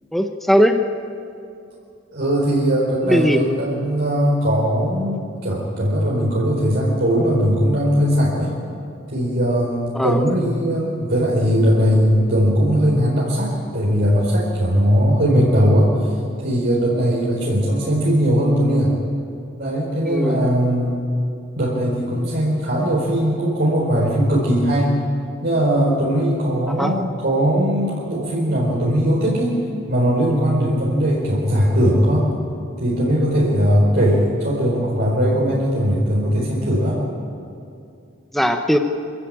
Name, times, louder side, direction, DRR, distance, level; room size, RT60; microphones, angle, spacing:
voice 1, 0.1-0.8 3.0-3.4 9.9-10.2 20.0-20.4 26.8-26.9 38.3-38.8, equal, ahead, 5 dB, 0.9 m, -18 dB
voice 2, 2.1-8.6 9.1-16.1 16.4-18.9 19.6-21.1 21.6-25.0 25.4-29.6 29.9-32.3 32.8-37.0, equal, 55° right, -5 dB, 4.5 m, -19 dB
26.0 x 15.5 x 8.9 m, 2.5 s
head